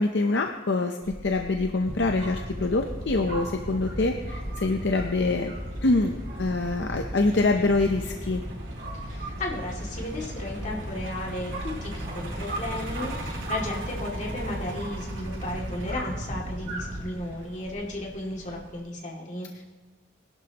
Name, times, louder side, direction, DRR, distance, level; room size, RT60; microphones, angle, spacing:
voice 1, 0.0-5.5 5.8-8.4, left 2 dB, 60° left, 4 dB, 0.7 m, -25 dB
Truck, 1.0-18.8, right 1 dB, 80° right, 4.0 m, -42 dB
sound 1, 1.9-17.0, equal, 55° right, 3.8 m, -36 dB
voice 2, 8.9-19.6, left 1 dB, 40° left, -2 dB, 2.4 m, -34 dB
21.0 x 11.5 x 3.0 m, 1.3 s
head